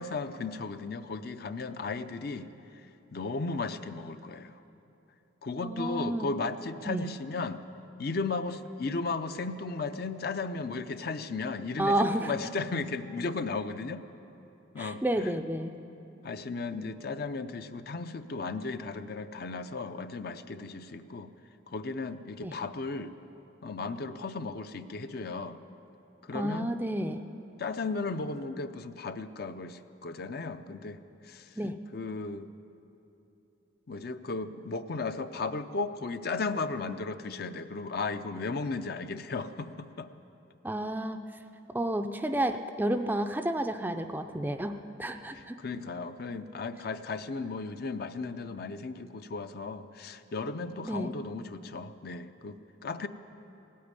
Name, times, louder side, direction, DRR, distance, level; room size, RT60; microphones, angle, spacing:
voice 1, 0.0-2.5 3.1-4.6 5.4-7.6 8.0-14.0 14.7-15.3 16.2-21.3 21.7-23.2 23.6-25.6 26.2-26.7 27.6-31.5 31.9-32.5 33.9-40.1 45.3-53.1, left 3 dB, 50° left, 10 dB, 0.5 m, -35 dB
voice 2, 5.6-6.3 6.9-7.0 11.8-12.3 14.8-15.7 22.4-22.5 26.3-27.2 31.6-31.8 40.6-41.2 41.7-44.7 45.0-45.6 50.8-51.1, right 1 dB, 10° right, 7 dB, 0.4 m, -30 dB
17.5 x 8.6 x 9.6 m, 2.9 s
head